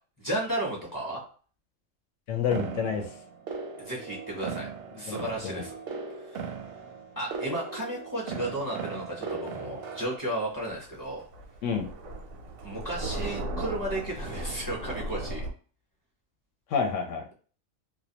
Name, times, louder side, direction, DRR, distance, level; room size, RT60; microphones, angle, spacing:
voice 1, 0.2-1.2 3.8-4.7 4.9-5.8 6.3-6.4 7.2-11.3 12.6-15.4, right 1 dB, 20° left, -4 dB, 0.7 m, -33 dB
voice 2, 2.3-3.0 5.1-5.6 11.6-11.9 16.7-17.3, left 6 dB, 70° left, 4 dB, 0.9 m, -29 dB
sound 1, 2.5-10.2, right 5 dB, 65° right, 0.6 m, -38 dB
Thunder, 10.5-15.5, right 1 dB, 90° right, 1.0 m, -36 dB
2.5 x 2.2 x 2.8 m, 0.40 s
omnidirectional pair, 1.4 m